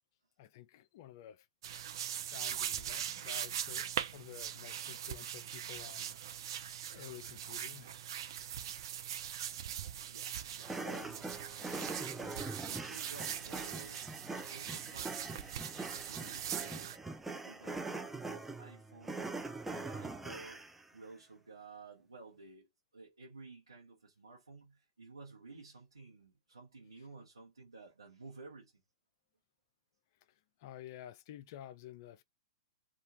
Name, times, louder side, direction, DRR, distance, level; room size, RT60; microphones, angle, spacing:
voice 1, 0.4-1.5 2.2-6.6 6.9-8.1 30.6-32.2, left 12 dB, 50° left, 0.4 m, -51 dB
sound 1, 1.6-17.0, right 9 dB, 60° right, 0.5 m, -41 dB
voice 2, 10.1-15.5 16.1-19.3 19.6-20.6 20.9-28.7, right 3 dB, 90° right, 1.0 m, -54 dB
sound 2, 10.6-20.8, right 3 dB, 5° right, 0.4 m, -43 dB
3.0 x 2.3 x 2.7 m
hypercardioid pair, 105°, 3 cm